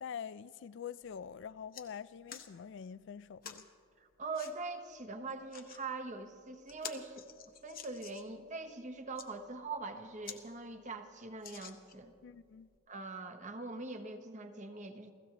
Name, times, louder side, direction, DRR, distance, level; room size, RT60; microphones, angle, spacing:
voice 1, 0.0-3.7 12.2-12.7, left 7 dB, 60° left, 0.3 m, -45 dB
sound 1, 1.0-1.2 1.5-1.9 2.3-2.5 3.4-3.7 4.3-4.5 5.3-5.8 6.3-6.4 6.7-8.3 9.0-9.3 9.8-9.9 10.2-10.4 10.8-10.9 11.4-12.1 12.8-12.9, left 8 dB, 45° left, 1.1 m, -48 dB
voice 2, 4.0-7.3 7.6-12.1 12.9-15.1, right 3 dB, 35° right, 1.1 m, -43 dB
29.5 x 16.5 x 2.9 m
head